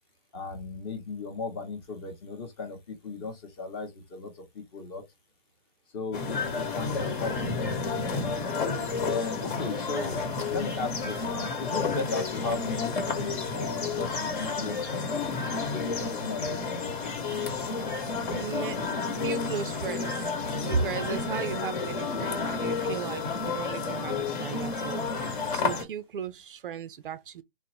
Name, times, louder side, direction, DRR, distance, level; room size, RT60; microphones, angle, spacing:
voice 1, 0.3-5.0 5.9-8.0 9.0-10.2 10.5-15.2 15.7-16.9, left 4 dB, 25° left, 0.8 m, -36 dB
sound 1, 6.1-25.8, left 4 dB, 55° left, 1.1 m, -31 dB
voice 2, 18.3-18.8 19.1-25.1 25.5-27.4, right 6 dB, 60° right, 0.4 m, -35 dB
3.7 x 2.0 x 2.8 m
hypercardioid pair, 150°, 31 cm